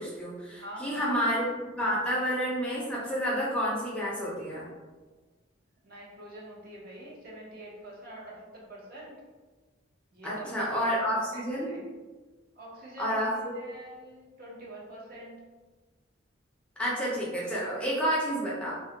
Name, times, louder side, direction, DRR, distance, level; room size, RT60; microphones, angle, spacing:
voice 1, 0.0-1.5 1.8-4.7 10.2-11.7 13.0-13.6 16.8-18.7, equal, 5° left, -6 dB, 0.4 m, -29 dB
voice 2, 0.5-1.1 5.8-9.2 10.1-11.8 12.6-15.4, right 1 dB, 50° right, -5 dB, 0.6 m, -45 dB
2.2 x 2.0 x 2.7 m, 1.3 s
head